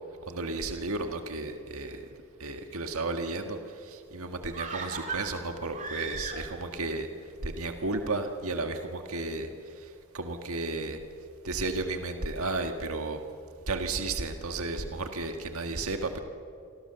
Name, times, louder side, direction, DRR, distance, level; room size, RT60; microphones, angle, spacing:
voice 1, 0.3-2.0 2.4-7.1 7.4-11.0 11.4-13.2 13.7-16.2, right 3 dB, 80° right, 5 dB, 1.7 m, -33 dB
sound 1, 4.5-6.8 7.1-7.2, right 4 dB, 35° right, 2.9 m, -37 dB
28.5 x 24.5 x 6.9 m, 2.5 s
head